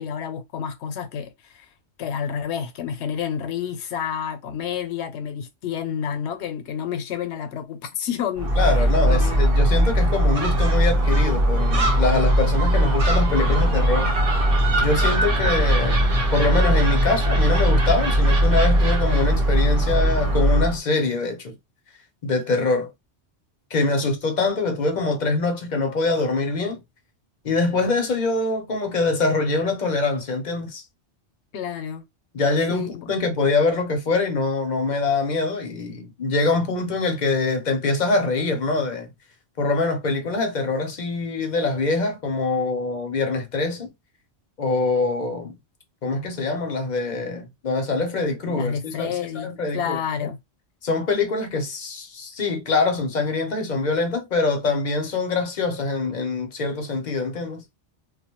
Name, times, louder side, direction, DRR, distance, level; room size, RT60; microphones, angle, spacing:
voice 1, 0.0-1.7 2.0-8.7 9.1-9.4 31.5-32.0 32.7-33.1 48.4-50.4, left 8 dB, 85° left, 0.9 m, -29 dB
Gull seagull, 8.4-20.8, right 1 dB, 60° right, 0.9 m, -19 dB
voice 2, 8.6-14.1 14.8-16.0 16.3-21.5 22.2-22.9 23.7-26.8 27.4-30.8 32.3-39.1 39.6-43.9 44.6-45.5 46.0-50.3 50.8-57.6, left 3 dB, 50° left, 0.7 m, -24 dB
2.3 x 2.1 x 2.9 m
omnidirectional pair, 1.1 m